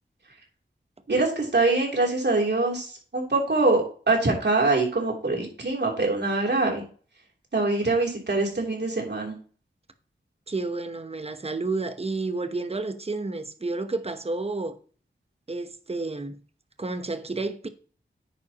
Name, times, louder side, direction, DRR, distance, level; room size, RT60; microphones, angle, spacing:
voice 1, 1.1-6.8 7.5-9.3, right 3 dB, 60° right, 3.2 m, -24 dB
voice 2, 10.5-14.8 15.5-16.4 16.8-17.7, right 3 dB, 30° right, 0.9 m, -30 dB
9.8 x 8.5 x 3.0 m
wide cardioid pair, 90°, 20 cm